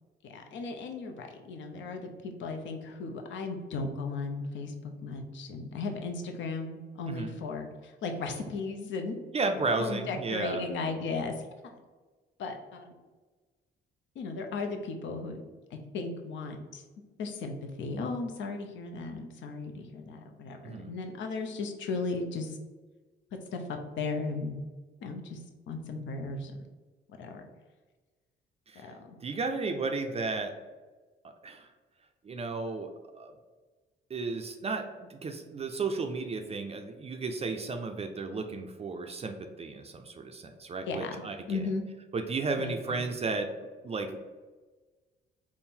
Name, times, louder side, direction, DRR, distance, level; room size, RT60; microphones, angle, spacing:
voice 1, 0.2-9.2 9.8-11.5 12.4-12.9 14.2-15.4 15.7-16.8 17.2-22.6 23.5-24.6 25.0-25.4 25.7-26.6 27.1-27.4 28.8-29.2 40.9-41.2 41.5-41.9 42.6-43.0, left 3 dB, 70° left, 4 dB, 0.6 m, -36 dB
voice 2, 9.3-10.6 20.6-20.9 28.7-28.9 29.2-30.5 31.4-31.7 32.2-33.3 34.1-41.6 42.1-43.5 43.8-44.2, right 3 dB, 30° right, 5 dB, 0.4 m, -33 dB
3.6 x 2.1 x 4.3 m, 1.3 s
cardioid pair, 90°, 20 cm